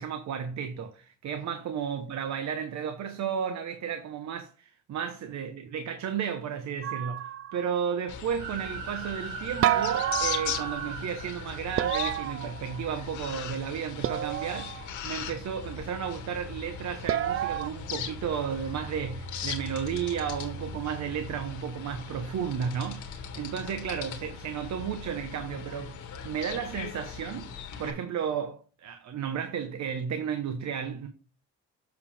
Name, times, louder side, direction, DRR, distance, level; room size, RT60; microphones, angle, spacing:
voice 1, 0.0-26.0 26.2-27.5 27.8-31.1, right 7 dB, 65° right, 1.0 m, -33 dB
sound 1, 6.8-7.7 9.6-11.0 11.8-13.1 14.0-14.9 17.1-17.7, right 11 dB, 45° right, 0.4 m, -29 dB
sound 2, 8.1-27.9, left 6 dB, 80° left, 1.7 m, -39 dB
sound 3, 8.4-12.1, right 5 dB, 85° right, 2.8 m, -39 dB
8.1 x 5.2 x 3.5 m
cardioid pair, 90°, 30 cm